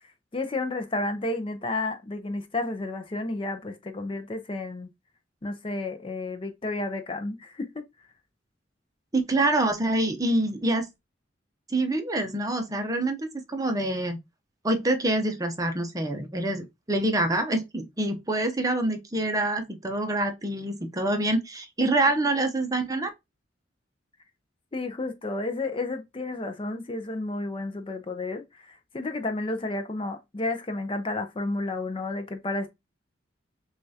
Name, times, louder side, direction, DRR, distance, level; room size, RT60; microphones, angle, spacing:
voice 1, 0.3-4.9 5.4-7.9 21.8-21.9 24.7-32.7, left 2 dB, 30° left, 0.5 m, -31 dB
voice 2, 9.1-10.8 11.7-14.2 14.6-23.1, right 2 dB, 20° right, 0.6 m, -26 dB
6.4 x 2.4 x 2.7 m
head